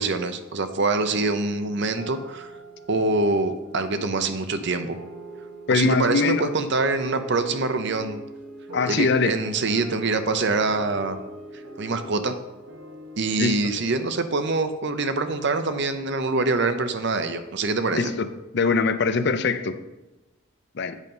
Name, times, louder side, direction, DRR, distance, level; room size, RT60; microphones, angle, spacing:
voice 1, 0.0-2.5 2.9-5.0 5.7-8.2 8.9-11.2 11.8-12.4 13.2-18.1, right 3 dB, 55° right, 9 dB, 0.6 m, -25 dB
sound 1, 1.0-17.8, right 1 dB, 80° right, 1.4 m, -42 dB
voice 2, 5.7-6.6 8.7-9.3 13.4-13.6 17.9-18.3 18.5-19.8 20.7-21.0, left 4 dB, 50° left, 10 dB, 0.5 m, -22 dB
8.2 x 5.2 x 5.4 m, 1.1 s
head